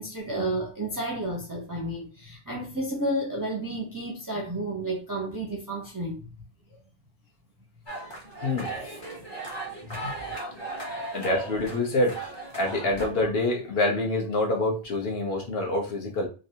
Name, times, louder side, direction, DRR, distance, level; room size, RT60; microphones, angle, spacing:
voice 1, 0.0-6.2 9.9-10.0 11.2-11.3, right 1 dB, 25° right, 0.5 m, -31 dB
sound 1, 7.9-13.1, right 2 dB, 25° left, 0.8 m, -37 dB
voice 2, 8.4-9.0 10.0-10.1 11.1-12.1 12.5-16.3, left 2 dB, 60° left, 1.2 m, -26 dB
3.1 x 2.5 x 2.7 m
omnidirectional pair, 1.1 m